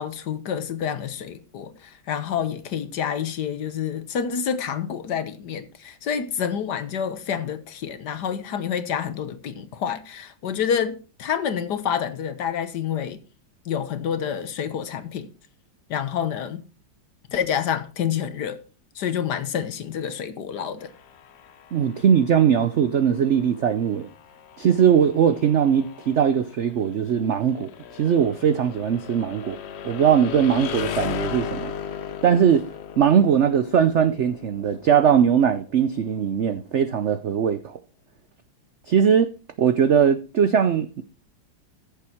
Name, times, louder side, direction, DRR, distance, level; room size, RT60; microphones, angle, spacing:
voice 1, 0.0-13.2 13.6-15.3 15.9-16.6 17.3-18.6 18.9-20.9, left 8 dB, 65° left, 1.6 m, -28 dB
sound 1, 20.8-36.6, left 8 dB, 85° left, 0.5 m, -37 dB
voice 2, 21.7-24.1 24.6-29.6 29.8-31.7 32.2-32.6 33.0-37.8 38.9-39.3 39.6-41.0, right 8 dB, 80° right, 0.6 m, -20 dB
14.5 x 7.1 x 4.5 m
omnidirectional pair, 2.1 m